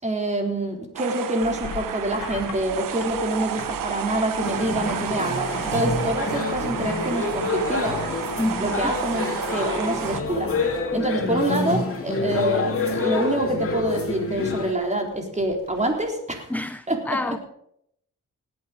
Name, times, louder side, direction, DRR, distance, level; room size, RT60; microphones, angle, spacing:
voice 1, 0.0-8.0 8.6-10.5 10.9-16.5 16.9-17.2, right 1 dB, 20° right, 3.9 m, -26 dB
sound 1, 1.0-10.2, right 9 dB, 85° right, 1.0 m, -31 dB
sound 2, 1.4-11.5 11.8-12.3 12.6-16.1, left 7 dB, 85° left, 2.3 m, -43 dB
sound 3, 4.4-14.7, left 3 dB, 45° left, 2.6 m, -28 dB
voice 2, 8.4-8.9 10.9-11.5 16.5-17.4, left 1 dB, 5° left, 0.5 m, -29 dB
18.5 x 8.7 x 5.2 m
cardioid pair, 65°, 32 cm